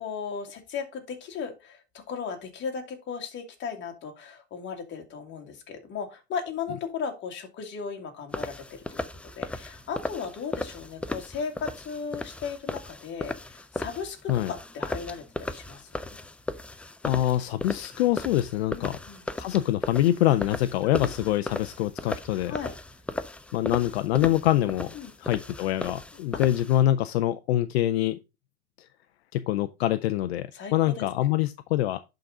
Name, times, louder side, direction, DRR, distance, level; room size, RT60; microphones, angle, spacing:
voice 1, 0.0-9.0 9.4-15.9 18.7-19.2 22.5-22.7 24.9-25.1 30.5-31.0, left 6 dB, 35° left, 2.2 m, -36 dB
sound 1, 8.3-26.8, left 2 dB, 5° left, 0.3 m, -36 dB
voice 2, 17.0-19.0 19.4-22.5 23.5-24.9 25.2-28.2 28.8-28.9 29.3-32.0, left 13 dB, 75° left, 0.6 m, -25 dB
11.0 x 4.0 x 3.7 m
hypercardioid pair, 105°, 32 cm